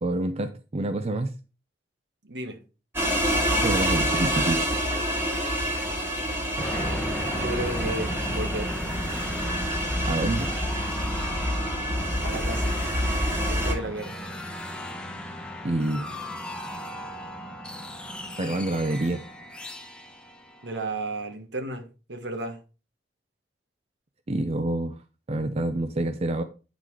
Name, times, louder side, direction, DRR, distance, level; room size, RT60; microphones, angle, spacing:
voice 1, 0.0-1.3 3.6-4.6 10.1-10.5 15.6-16.1 18.4-19.2 24.3-25.0 25.3-26.4, right 1 dB, 35° right, 0.5 m, -27 dB
voice 2, 2.2-2.6 6.6-6.7 7.4-8.8 12.2-12.7 13.5-14.2 20.6-22.6, right 2 dB, 80° right, 1.3 m, -33 dB
sound 1, 2.9-13.7, equal, 15° right, 1.4 m, -27 dB
Dramatic piano, 6.6-21.2, equal, 5° left, 0.8 m, -36 dB
9.1 x 4.0 x 4.7 m
head